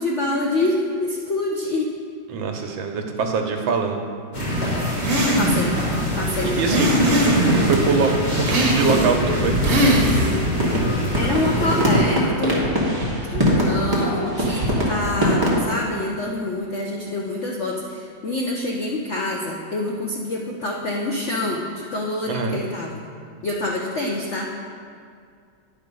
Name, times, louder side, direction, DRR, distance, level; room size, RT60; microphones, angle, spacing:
voice 1, 0.0-1.9 4.6-4.7 5.4-5.7 6.2-7.3 10.7-10.8 11.2-12.6 13.3-23.0 23.4-24.5, left 2 dB, 70° left, -1 dB, 0.6 m, -26 dB
voice 2, 2.3-4.0 6.4-9.5 22.3-22.6, right 5 dB, 80° right, 4 dB, 1.5 m, -24 dB
sound 1, 4.3-12.0, left 1 dB, 25° left, 1.6 m, -24 dB
sound 2, 5.0-5.8 6.6-7.7 8.5-9.2 9.6-10.4, right 1 dB, 45° right, 1.6 m, -20 dB
sound 3, 7.5-8.2 8.6-8.7 8.8-15.6, equal, 15° right, 1.3 m, -22 dB
10.0 x 4.8 x 5.3 m, 2.2 s
omnidirectional pair, 2.1 m